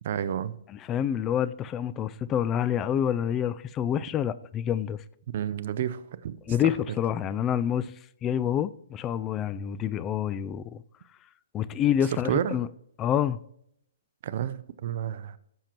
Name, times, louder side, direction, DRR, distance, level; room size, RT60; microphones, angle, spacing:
voice 1, 0.0-0.5 5.3-6.4 12.1-12.6 14.2-15.4, right 9 dB, 55° right, 0.6 m, -30 dB
voice 2, 0.7-5.0 6.5-7.9 8.2-10.8 11.5-12.7 13.0-13.4, left 9 dB, 20° left, 0.4 m, -27 dB
16.5 x 7.4 x 3.0 m
hypercardioid pair, 145°, 0 cm